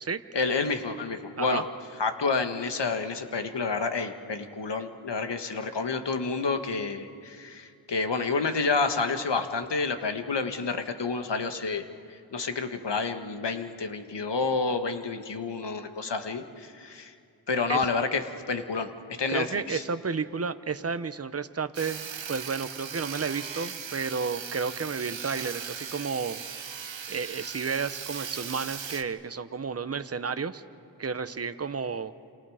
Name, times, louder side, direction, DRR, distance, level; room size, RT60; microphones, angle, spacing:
voice 1, 0.3-1.6 2.0-11.8 12.3-17.1 17.5-18.9 19.2-19.8, left 4 dB, 65° left, 7 dB, 1.7 m, -29 dB
voice 2, 19.3-26.4 27.1-30.6 31.0-32.1, right 5 dB, 30° right, 11 dB, 1.0 m, -32 dB
Sawing, 21.7-29.0, right 7 dB, 75° right, 1.3 m, -38 dB
28.5 x 28.5 x 5.0 m, 2.5 s
cardioid pair, 50°, 46 cm